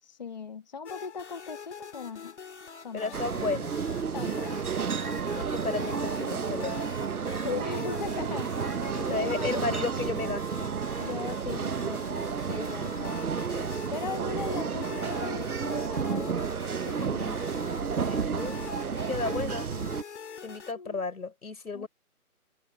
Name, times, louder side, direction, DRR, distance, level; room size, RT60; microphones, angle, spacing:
voice 1, 0.0-2.3 2.8-3.2 4.1-4.9 7.4-8.5 9.1-9.8 11.0-13.2 13.9-16.5 16.8-17.4 19.2-19.4 20.7-21.0 21.7-21.9, left 5 dB, 30° left, 1.4 m, -39 dB
sound 1, 0.9-20.7, left 6 dB, 50° left, 2.5 m, -45 dB
voice 2, 2.9-3.8 5.3-6.9 9.0-10.7 13.5-13.8 18.0-18.6 18.9-19.7 20.4-21.9, left 4 dB, 70° left, 5.0 m, -33 dB
sound 2, 3.1-20.0, right 6 dB, 70° right, 1.3 m, -31 dB
open air
hypercardioid pair, 170°, 45 cm